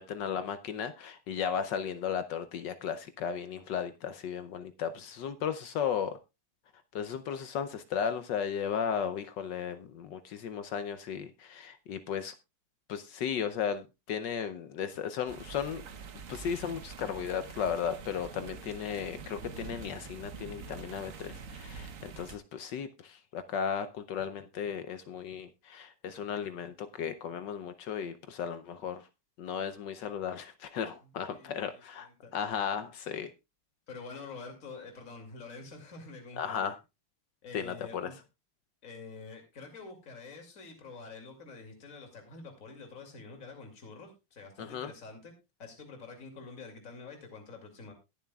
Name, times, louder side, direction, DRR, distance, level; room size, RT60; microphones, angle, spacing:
voice 1, 0.0-6.2 6.9-12.3 12.9-15.8 16.3-29.0 29.4-33.3 36.4-36.7 37.5-38.1 44.6-44.9, left 7 dB, 70° left, 1.1 m, -35 dB
sound 1, 15.3-22.4, right 5 dB, 50° right, 1.0 m, -45 dB
voice 2, 31.1-32.3 33.9-36.7 37.4-38.1 38.8-45.3 45.6-47.9, left 4 dB, 35° left, 2.8 m, -47 dB
21.5 x 7.2 x 2.3 m
omnidirectional pair, 2.4 m